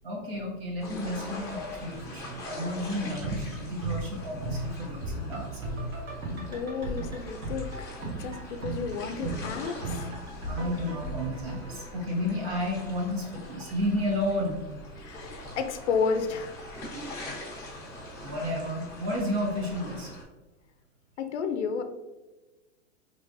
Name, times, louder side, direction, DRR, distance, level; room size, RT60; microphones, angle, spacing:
voice 1, 0.0-5.7 10.5-14.6 18.2-20.1, left 1 dB, 50° right, 0 dB, 1.2 m, -32 dB
sound 1, 0.8-20.2, left 1 dB, 10° left, 0.8 m, -43 dB
sound 2, 2.8-12.7 13.0-13.1, right 2 dB, 80° right, 1.4 m, -36 dB
voice 2, 6.5-10.1 10.6-10.8 15.0-16.6 21.2-21.8, left 5 dB, 60° left, 7 dB, 0.5 m, -32 dB
3.7 x 3.3 x 2.6 m, 1.1 s
supercardioid pair, 160°, 39 cm